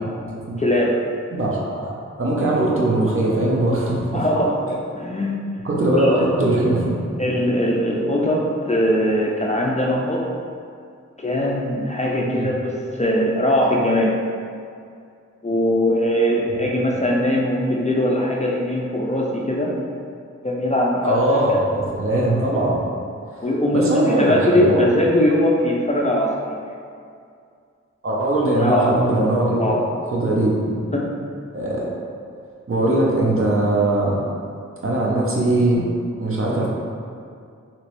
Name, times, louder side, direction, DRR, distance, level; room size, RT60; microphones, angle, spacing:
voice 1, 0.6-1.0 4.1-4.6 5.0-5.4 6.0-6.1 7.2-10.3 11.2-14.2 15.4-19.8 20.4-21.4 23.4-26.6 28.6-28.9 29.6-29.8 30.9-31.1, left 1 dB, 25° left, -3 dB, 0.3 m, -21 dB
voice 2, 1.3-1.9 2.2-4.3 4.7-4.8 5.6-7.0 12.2-12.5 21.0-22.8 23.3-23.5 23.7-24.8 28.0-29.8 30.1-30.9 31.5-31.9 32.7-34.2 34.8-35.9 36.2-36.7, right 1 dB, 45° right, -4 dB, 0.7 m, -20 dB
3.0 x 2.9 x 3.0 m, 2.3 s
wide cardioid pair, 55°, 30 cm